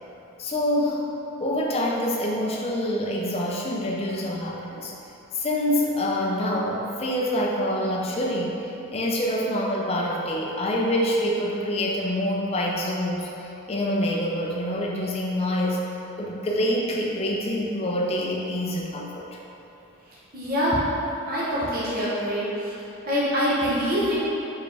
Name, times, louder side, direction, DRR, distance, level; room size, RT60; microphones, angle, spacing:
voice 1, 0.4-1.0 1.4-4.9 5.3-15.8 16.2-19.3, left 1 dB, 25° left, -2 dB, 0.4 m, -26 dB
voice 2, 20.3-20.8 21.3-22.7 23.0-24.1, equal, 40° right, -9 dB, 0.8 m, -25 dB
4.4 x 3.5 x 3.3 m, 3.0 s
head